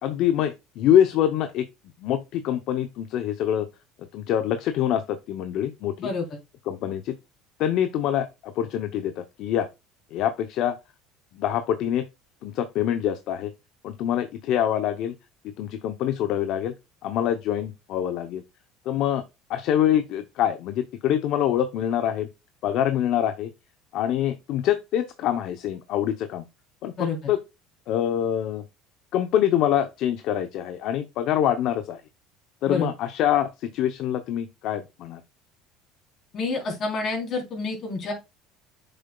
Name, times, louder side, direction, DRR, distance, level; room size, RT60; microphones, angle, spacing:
voice 1, 0.0-1.7 2.0-3.7 4.0-6.1 6.7-7.2 7.6-9.7 10.1-10.8 11.3-12.1 12.4-13.5 13.8-15.1 15.6-16.7 17.0-18.4 18.9-19.2 19.5-22.3 22.6-23.5 23.9-26.4 26.8-27.4 27.9-28.6 29.1-32.0 32.6-35.2, left 10 dB, 60° left, 0.6 m, -25 dB
voice 2, 36.3-38.1, left 4 dB, 40° left, 3.5 m, -28 dB
7.6 x 6.7 x 2.2 m
cardioid pair, 120°, 0 cm